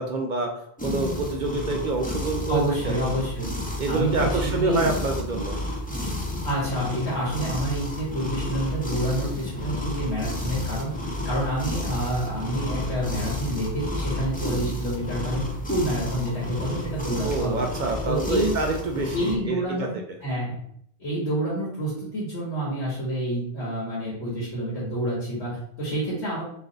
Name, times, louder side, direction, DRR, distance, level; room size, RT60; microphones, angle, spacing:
voice 1, 0.0-3.0 3.8-5.6 17.2-19.9, right 3 dB, 60° right, 2 dB, 0.5 m, -27 dB
sound 1, 0.8-19.4, left 1 dB, 10° left, 0.4 m, -31 dB
voice 2, 2.5-3.5 3.9-4.9 6.4-10.9 11.2-17.6 18.0-18.5 19.1-19.9 20.2-20.6 21.0-26.4, right 1 dB, 90° left, -6 dB, 1.5 m, -28 dB
3.2 x 2.5 x 3.8 m, 0.68 s
omnidirectional pair, 1.1 m